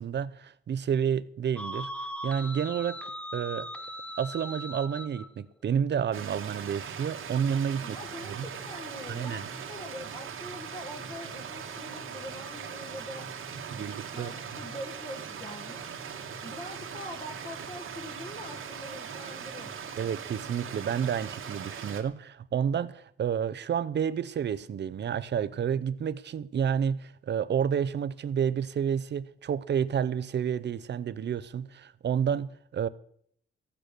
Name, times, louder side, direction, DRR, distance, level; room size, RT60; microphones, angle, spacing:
voice 1, 0.0-1.9 2.2-3.0 3.3-3.7 4.2-8.0 8.3-8.4 9.1-9.5 13.7-14.3 20.0-32.9, right 8 dB, 60° right, 0.7 m, -30 dB
sound 1, 1.6-5.3, equal, 5° left, 0.8 m, -39 dB
Stream, 6.1-22.0, right 7 dB, 85° right, 1.8 m, -40 dB
voice 2, 7.8-13.2 13.7-13.8 14.1-16.0 16.4-19.8, left 1 dB, 30° left, 1.7 m, -43 dB
14.5 x 9.1 x 6.8 m
wide cardioid pair, 125°, 21 cm